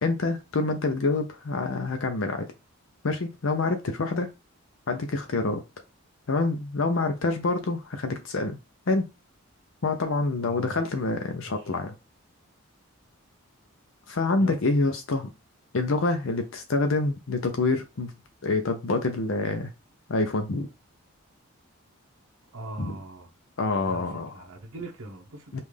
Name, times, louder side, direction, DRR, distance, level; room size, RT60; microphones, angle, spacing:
voice 1, 0.0-2.5 3.0-4.3 4.9-5.6 6.3-8.6 8.9-9.1 9.8-11.9 14.1-15.3 15.7-18.1 18.4-19.7 20.1-20.7 22.8-23.0 23.6-24.3 25.5-25.6, left 3 dB, 65° left, 0.6 m, -26 dB
voice 2, 10.4-10.8 11.4-11.7 14.4-14.6 22.5-23.3 23.9-25.6, right 2 dB, 85° right, 0.9 m, -41 dB
5.4 x 2.5 x 3.3 m
head